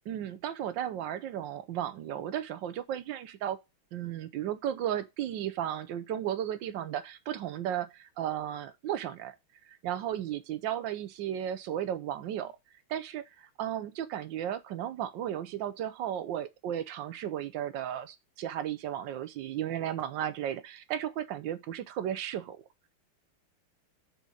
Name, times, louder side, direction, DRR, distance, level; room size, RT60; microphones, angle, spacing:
voice 1, 0.1-3.6 3.9-9.3 9.7-12.6 12.9-22.6, right 10 dB, 70° right, 1.2 m, -34 dB
6.2 x 4.4 x 5.2 m
omnidirectional pair, 2.3 m